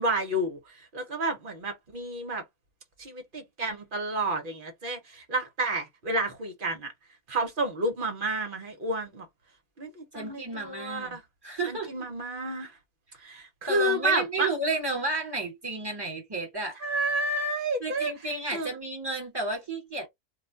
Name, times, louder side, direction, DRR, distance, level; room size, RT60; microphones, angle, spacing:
voice 1, 0.0-2.4 3.0-6.9 7.3-9.3 9.8-11.2 11.6-12.7 13.2-14.5 16.8-18.7, right 1 dB, 50° right, 0.7 m, -30 dB
voice 2, 10.1-11.2 11.4-12.1 13.7-16.8 17.8-20.1, right 2 dB, 20° right, 1.2 m, -32 dB
2.4 x 2.1 x 3.7 m
omnidirectional pair, 1.4 m